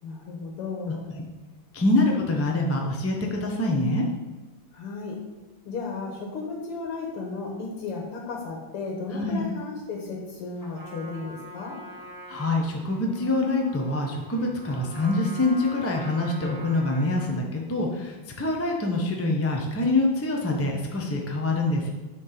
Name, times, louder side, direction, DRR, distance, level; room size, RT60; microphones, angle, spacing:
voice 1, 0.0-1.1 4.7-5.2 5.7-11.8, left 4 dB, 90° left, 0 dB, 2.3 m, -34 dB
voice 2, 1.7-4.0 9.1-9.4 12.3-21.9, left 2 dB, 20° left, 0 dB, 0.3 m, -25 dB
Trumpet, 10.6-17.4, equal, 10° right, 1.2 m, -44 dB
9.7 x 4.3 x 5.9 m, 1.1 s
omnidirectional pair, 2.4 m